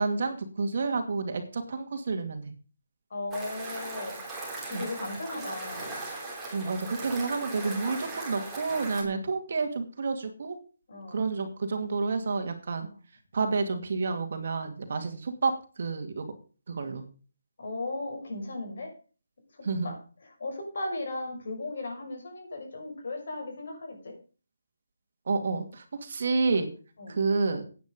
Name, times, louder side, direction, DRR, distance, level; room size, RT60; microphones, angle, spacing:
voice 1, 0.0-2.5 4.7-4.9 6.5-10.6 11.1-12.9 13.3-15.5 15.8-16.2 16.7-17.0 19.6-19.9 25.3-26.7 27.1-27.6, right 4 dB, 50° right, 6 dB, 2.4 m, -29 dB
voice 2, 3.1-4.2 4.7-5.9 9.0-9.2 10.9-11.2 12.8-12.9 14.9-15.1 17.6-18.9 19.8-20.0 20.2-24.1 27.0-27.2, left 2 dB, 55° left, 3 dB, 6.0 m, -36 dB
sound 1, 3.3-9.0, right 2 dB, 5° right, 3.2 m, -38 dB
12.0 x 9.4 x 5.3 m, 0.37 s
hypercardioid pair, 165°, 0 cm